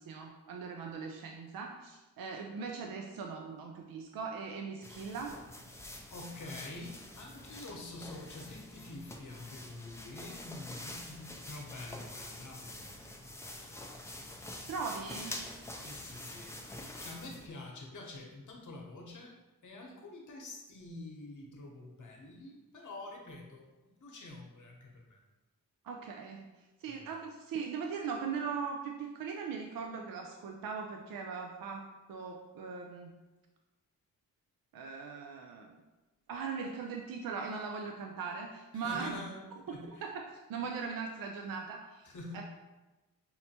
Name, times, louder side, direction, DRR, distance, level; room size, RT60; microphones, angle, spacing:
voice 1, 0.0-5.4 14.7-15.5 25.8-26.5 26.8-33.2 34.7-35.8 36.3-39.2 39.7-42.0 42.3-42.4, right 5 dB, 70° right, 2 dB, 0.5 m, -40 dB
sound 1, 4.8-17.5, left 1 dB, 10° left, 0.4 m, -46 dB
voice 2, 6.1-13.8 15.8-16.5 17.0-19.4 19.6-25.2 26.9-27.1 38.8-39.4 39.7-40.1 42.0-42.4, left 2 dB, 55° left, 0 dB, 1.0 m, -47 dB
5.5 x 2.1 x 2.8 m, 1.1 s
cardioid pair, 65°, 36 cm